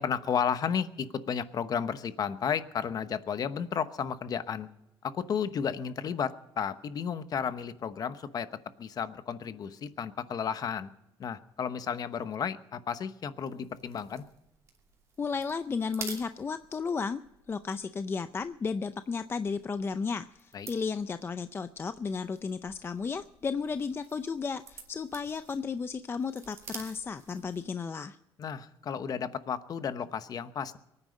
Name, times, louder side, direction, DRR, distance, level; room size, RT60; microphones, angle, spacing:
voice 1, 0.0-4.7 5.0-8.5 8.8-10.9 11.2-14.2 20.5-20.7 28.4-30.8, left 7 dB, 45° left, 12 dB, 0.9 m, -33 dB
sound 1, 13.4-27.8, right 4 dB, 30° right, 2.7 m, -50 dB
voice 2, 15.2-17.2 17.5-28.2, left 5 dB, 25° left, 11 dB, 0.5 m, -34 dB
23.0 x 9.8 x 5.2 m, 0.88 s
cardioid pair, 140°, 9 cm